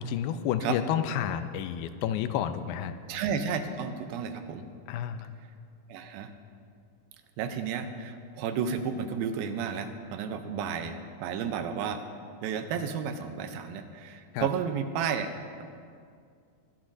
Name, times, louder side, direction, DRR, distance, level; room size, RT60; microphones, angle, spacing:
voice 1, 0.0-2.9 4.9-5.4 14.3-14.5, left 9 dB, 85° left, 10 dB, 2.4 m, -30 dB
voice 2, 3.1-4.6 5.9-6.3 7.4-12.0 12.4-15.3, right 7 dB, 90° right, 8 dB, 2.6 m, -32 dB
21.5 x 11.0 x 2.6 m, 2.3 s
omnidirectional pair, 4.1 m